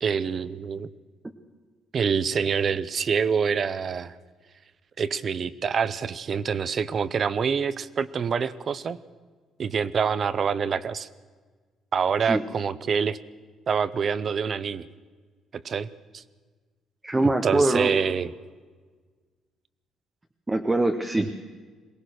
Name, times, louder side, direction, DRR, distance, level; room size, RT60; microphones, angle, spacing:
voice 1, 0.0-0.9 1.9-4.2 5.0-9.0 9.6-11.1 11.9-13.2 13.7-14.9 15.5-16.2 17.2-18.3, right 6 dB, 35° right, 17 dB, 0.7 m, -26 dB
voice 2, 17.0-17.9 20.5-21.3, right 2 dB, 10° right, 5 dB, 1.1 m, -23 dB
22.5 x 18.5 x 6.5 m, 1.5 s
cardioid pair, 145°, 0 cm